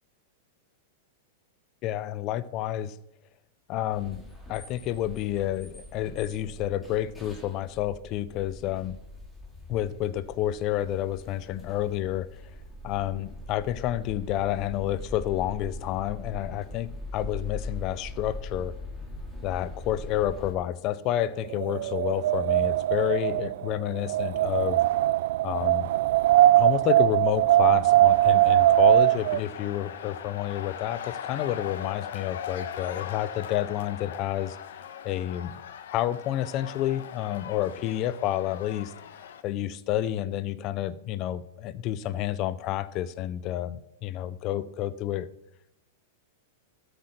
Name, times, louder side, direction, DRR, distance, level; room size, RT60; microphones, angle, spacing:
voice 1, 1.8-3.0 3.7-4.2 4.5-9.0 9.7-12.3 12.8-18.7 19.4-24.8 25.4-25.9 26.6-34.6 35.0-35.5 35.9-38.9 39.4-45.3, left 12 dB, 40° left, 15 dB, 0.7 m, -29 dB
sound 1, 3.9-20.5, left 2 dB, 10° left, 3.2 m, -42 dB
Wind, 21.4-29.4, right 14 dB, 65° right, 0.3 m, -21 dB
sound 2, 28.0-39.4, left 8 dB, 75° left, 1.2 m, -40 dB
13.0 x 8.1 x 6.0 m, 0.80 s
hypercardioid pair, 135°, 0 cm